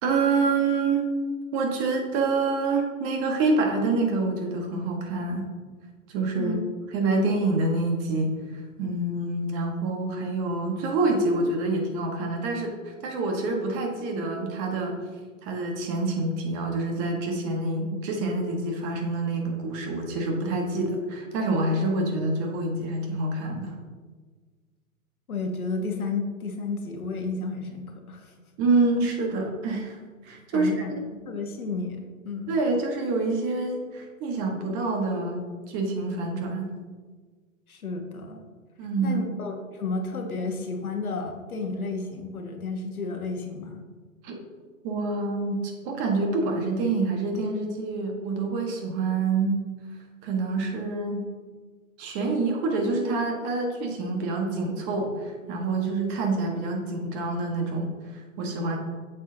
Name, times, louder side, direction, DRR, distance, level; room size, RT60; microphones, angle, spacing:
voice 1, 0.0-1.1 1.5-5.5 6.1-6.6 6.9-8.3 8.8-12.7 13.0-15.0 15.4-23.8 28.6-30.0 30.2-30.8 32.5-36.7 38.8-39.2 44.2-44.3 44.8-49.6 50.2-51.3 52.0-58.8, right 3 dB, 35° right, 2 dB, 1.4 m, -27 dB
voice 2, 25.3-28.3 30.5-32.6 37.7-38.4 39.0-43.8, left 3 dB, 85° left, 3 dB, 1.4 m, -32 dB
7.9 x 6.7 x 2.8 m, 1.4 s
hypercardioid pair, 120°, 42 cm